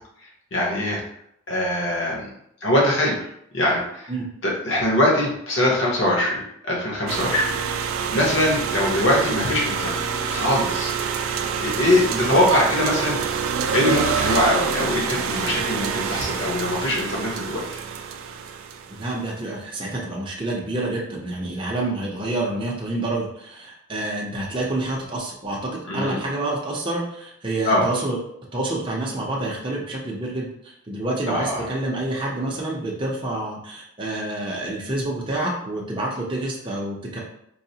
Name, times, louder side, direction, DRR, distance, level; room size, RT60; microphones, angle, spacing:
voice 1, 0.5-1.0 1.5-2.3 2.6-3.3 3.5-4.1 4.4-10.9 11.6-13.2 13.7-17.6 25.9-26.2 27.7-27.8 31.3-31.7, left 1 dB, 65° left, -3 dB, 1.0 m, -22 dB
sound 1, 7.1-19.1, right 6 dB, 85° right, 0.3 m, -26 dB
voice 2, 18.9-28.2 28.5-37.2, right 2 dB, 25° right, -4 dB, 0.6 m, -28 dB
4.7 x 2.0 x 2.7 m, 0.74 s
head